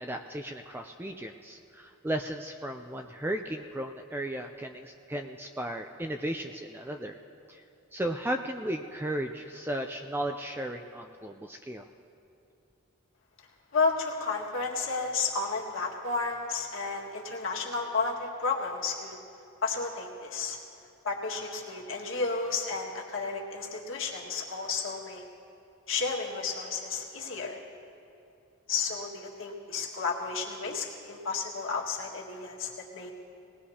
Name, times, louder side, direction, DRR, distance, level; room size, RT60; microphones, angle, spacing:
voice 1, 0.0-7.2 7.5-7.6 7.9-11.9, right 1 dB, 10° right, 5 dB, 0.3 m, -35 dB
voice 2, 13.7-19.2 19.6-20.6 21.0-25.2 25.9-27.6 28.7-33.1, left 4 dB, 60° left, -2 dB, 1.8 m, -32 dB
20.0 x 18.5 x 2.8 m, 2.7 s
head